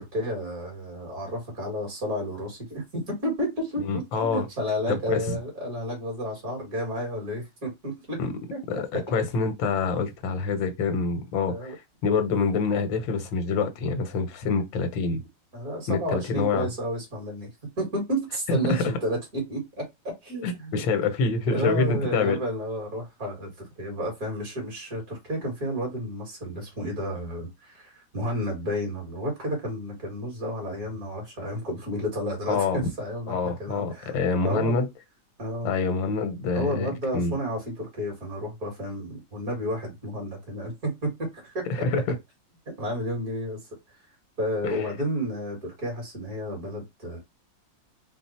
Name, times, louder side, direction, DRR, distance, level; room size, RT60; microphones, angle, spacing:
voice 1, 0.0-8.2 8.5-9.0 11.5-11.8 15.5-20.8 21.5-34.1 34.4-34.7 35.4-35.7 36.5-41.9 42.8-43.6 44.4-47.2, equal, 50° right, 2.3 m, -31 dB
voice 2, 3.8-4.5 4.9-5.2 8.2-8.3 8.7-15.2 15.9-16.7 18.5-18.8 20.4-22.4 32.5-32.8 33.3-34.9 35.6-37.4 41.7-42.0 44.6-44.9, left 4 dB, 85° left, 1.6 m, -26 dB
4.4 x 2.0 x 4.1 m
omnidirectional pair, 2.0 m